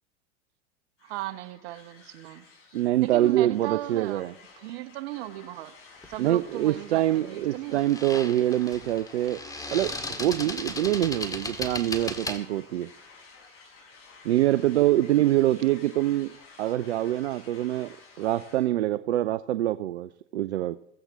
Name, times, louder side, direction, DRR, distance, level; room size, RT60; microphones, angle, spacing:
sound 1, 1.0-18.7, left 4 dB, 40° left, 7.1 m, -52 dB
voice 1, 1.0-2.4 3.0-5.7 6.1-8.0, right 15 dB, 60° right, 10 dB, 1.1 m, -37 dB
voice 2, 2.7-4.3 6.2-9.4 9.7-9.9 10.2-12.9 14.2-16.3 16.6-20.8, right 14 dB, 75° right, 13 dB, 0.6 m, -25 dB
sound 2, 6.0-6.3 7.7-12.4, left 2 dB, 10° left, 1.9 m, -36 dB
16.0 x 16.0 x 3.6 m, 0.77 s
hypercardioid pair, 85°, 33 cm